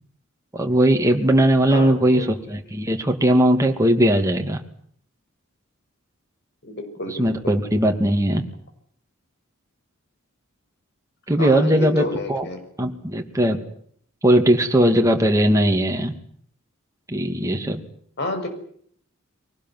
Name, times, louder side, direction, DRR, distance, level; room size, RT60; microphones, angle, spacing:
voice 1, 0.5-4.6 7.1-8.4 11.3-12.5 12.8-13.6 14.2-16.1 17.1-17.8, right 1 dB, 15° right, 3 dB, 2.7 m, -19 dB
voice 2, 1.7-2.3 6.6-7.6 11.4-12.6 18.2-18.5, left 1 dB, 55° left, 6 dB, 6.4 m, -30 dB
23.0 x 19.5 x 9.5 m, 0.62 s
head